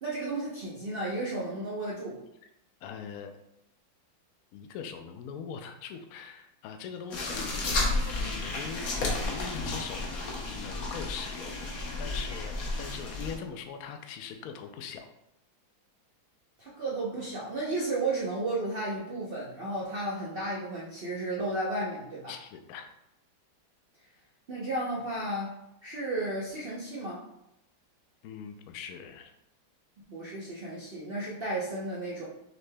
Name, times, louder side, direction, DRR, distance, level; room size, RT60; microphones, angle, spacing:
voice 1, 0.0-2.2 16.6-22.3 24.5-27.2 30.1-32.2, right 2 dB, 80° right, -5 dB, 0.5 m, -33 dB
voice 2, 2.8-3.4 4.5-7.8 8.2-11.6 12.0-15.1 22.3-22.9 28.2-29.3, left 7 dB, 85° left, 6 dB, 0.7 m, -41 dB
sound 1, 7.1-13.3, left 2 dB, 55° left, 1.2 m, -32 dB
6.3 x 3.4 x 2.2 m, 0.83 s
omnidirectional pair, 2.1 m